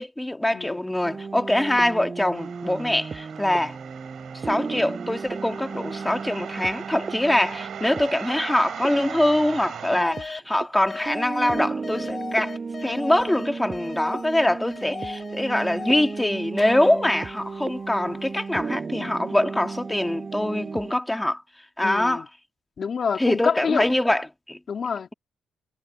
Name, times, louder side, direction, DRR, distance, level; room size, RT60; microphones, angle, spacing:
voice 1, 0.0-3.8 4.4-21.4 21.8-22.2 23.2-24.6, left 1 dB, 10° left, 2.1 m, -24 dB
sound 1, 1.0-10.3 10.6-10.7 11.1-20.9, right 4 dB, 35° right, 6.9 m, -35 dB
sound 2, 2.3-10.0, right 9 dB, 65° right, 3.2 m, -38 dB
voice 2, 9.9-10.2 21.8-22.3 22.8-23.9 24.7-25.1, left 6 dB, 50° left, 2.5 m, -27 dB
sound 3, 10.0-10.4 10.9-16.2 16.6-18.3, left 4 dB, 30° left, 4.6 m, -38 dB
cardioid pair, 90°, 0 cm